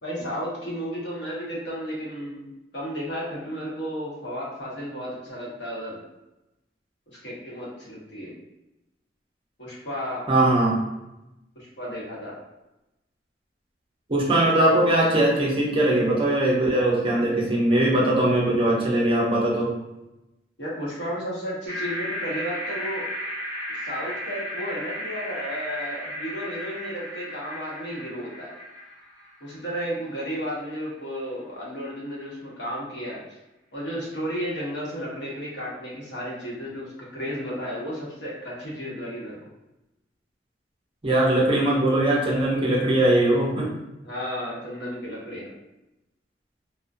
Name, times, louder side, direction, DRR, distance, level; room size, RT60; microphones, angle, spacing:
voice 1, 0.0-6.0 7.1-8.3 9.6-10.2 11.5-12.3 20.6-23.1 23.8-28.5 29.4-33.2 33.7-39.4 44.0-45.5, equal, 75° left, -5 dB, 0.9 m, -33 dB
voice 2, 10.3-10.8 14.1-19.7 41.0-43.7, right 1 dB, 30° right, -3 dB, 0.5 m, -21 dB
sound 1, 21.7-29.9, left 1 dB, 30° left, 1.4 m, -34 dB
2.3 x 2.1 x 2.5 m, 0.95 s
head